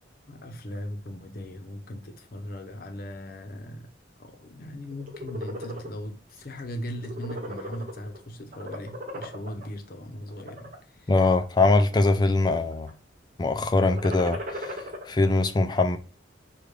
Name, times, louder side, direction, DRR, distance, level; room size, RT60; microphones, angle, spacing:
voice 1, 0.3-3.9 4.2-10.7 11.0-11.1, equal, 50° left, 0.7 m, -38 dB
sound 1, 4.9-5.9 6.4-6.6 6.9-8.2 8.5-9.6 10.3-10.7 11.3-12.1 12.4-12.9 13.8-15.0, equal, 40° right, 0.7 m, -37 dB
voice 2, 11.1-12.9 13.4-16.0, left 2 dB, 20° left, 0.3 m, -22 dB
5.0 x 2.3 x 3.1 m
head